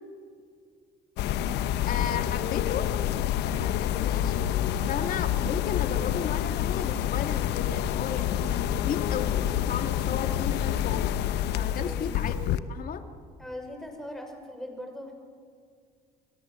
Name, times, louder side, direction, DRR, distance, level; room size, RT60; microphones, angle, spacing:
sound 1, 1.2-12.6, left 11 dB, 80° left, 1.1 m, -28 dB
voice 1, 1.9-2.9 3.5-4.5 4.9-13.1, left 7 dB, 55° left, 6 dB, 2.6 m, -34 dB
voice 2, 11.5-12.3 13.4-15.1, left 1 dB, ahead, 4 dB, 6.1 m, -40 dB
30.0 x 22.5 x 7.8 m, 2.1 s
cardioid pair, 110°, 17 cm